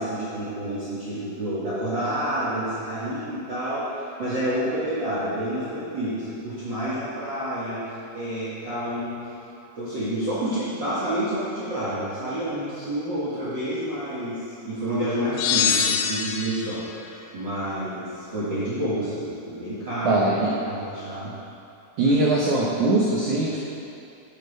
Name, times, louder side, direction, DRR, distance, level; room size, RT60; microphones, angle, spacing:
voice 1, 0.0-9.2 9.8-20.2 20.7-21.3, right 1 dB, 55° right, -10 dB, 1.2 m, -29 dB
sound 1, 15.4-16.8, left 7 dB, 85° left, 2.8 m, -23 dB
voice 2, 20.0-20.5 22.0-23.6, right 2 dB, 85° right, -4 dB, 1.7 m, -21 dB
9.0 x 8.0 x 5.3 m, 2.7 s
omnidirectional pair, 4.9 m